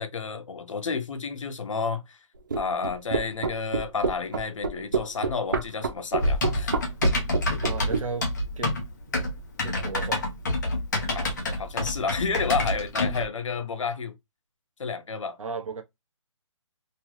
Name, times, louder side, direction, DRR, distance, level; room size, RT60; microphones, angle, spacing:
voice 1, 0.0-2.2 2.6-6.7 11.1-14.1 14.8-15.4, left 5 dB, 70° left, 0.7 m, -31 dB
sound 1, 2.5-8.0, right 4 dB, 40° right, 0.4 m, -27 dB
Typing, 6.2-13.2, left 1 dB, 35° left, 0.8 m, -27 dB
voice 2, 7.6-8.3 8.6-8.8 9.1-9.3 9.6-10.3 15.4-15.8, right 4 dB, 80° right, 0.9 m, -34 dB
3.0 x 2.3 x 3.0 m
hypercardioid pair, 175°, 17 cm